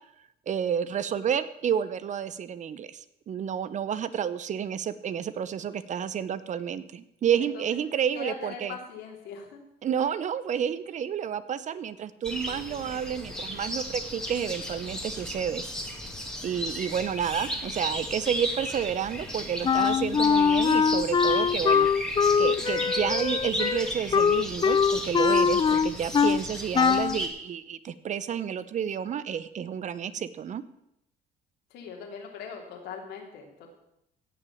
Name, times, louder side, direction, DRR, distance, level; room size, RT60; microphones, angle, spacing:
voice 1, 0.5-8.8 9.8-15.6 16.0-16.1 16.4-30.6, right 8 dB, 45° right, 15 dB, 0.8 m, -30 dB
voice 2, 8.1-9.6 31.7-33.7, left 6 dB, 85° left, 2 dB, 3.2 m, -40 dB
sound 1, 12.2-27.3, equal, 5° left, 2.4 m, -35 dB
Wind instrument woodwind instrument, 19.6-26.4 26.7-27.2, left 6 dB, 25° left, 0.5 m, -22 dB
17.0 x 6.0 x 7.2 m, 0.81 s
cardioid pair, 110°, 17 cm